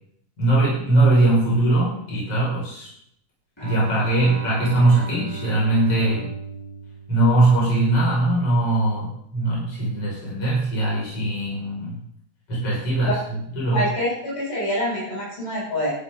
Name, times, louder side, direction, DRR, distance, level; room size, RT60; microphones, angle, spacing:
voice 1, 0.4-2.9 3.6-6.3 7.1-12.0 12.5-13.2 13.5-13.8, right 2 dB, 35° left, -6 dB, 6.7 m, -20 dB
Bowed string instrument, 3.6-8.0, right 3 dB, 15° left, 1.1 m, -36 dB
voice 2, 13.7-15.9, left 1 dB, 65° left, -5 dB, 8.7 m, -25 dB
13.0 x 12.5 x 3.9 m, 0.69 s
omnidirectional pair, 4.5 m